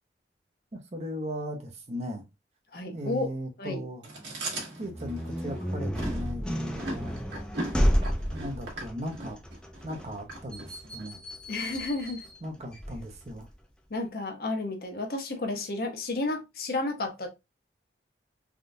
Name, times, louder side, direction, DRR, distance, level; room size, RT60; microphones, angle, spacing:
voice 1, 0.7-2.2 2.9-4.0 4.8-7.2 8.3-9.4 9.8-11.2 12.4-13.5, equal, 40° right, 0.7 m, -37 dB
voice 2, 2.7-3.3 3.6-3.9 11.5-12.2 13.9-17.3, left 2 dB, 55° left, 0.7 m, -32 dB
Chewing mastication, 4.0-11.1, right 2 dB, 75° right, 1.3 m, -39 dB
sound 1, 4.8-13.5, equal, 5° left, 0.4 m, -32 dB
3.5 x 2.3 x 2.5 m
head